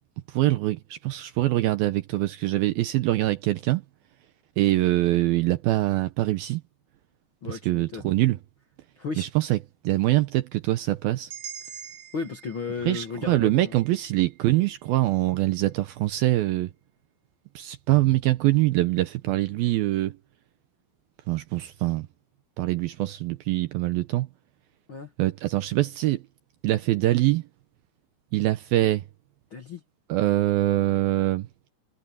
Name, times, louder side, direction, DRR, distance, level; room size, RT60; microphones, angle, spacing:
voice 1, 0.3-3.8 4.6-6.6 7.5-8.4 9.2-9.6 9.8-11.3 12.9-16.7 17.6-20.1 21.3-22.1 22.6-24.3 25.2-26.2 26.6-27.4 28.3-29.0 30.1-31.5, right 16 dB, 80° right, 2.3 m, -24 dB
voice 2, 7.4-8.1 9.0-9.3 11.7-11.8 12.1-13.8 24.9-25.1 29.5-29.8, left 5 dB, 50° left, 1.5 m, -34 dB
sound 1, 11.3-15.3, right 8 dB, 60° right, 3.3 m, -45 dB
omnidirectional pair, 4.9 m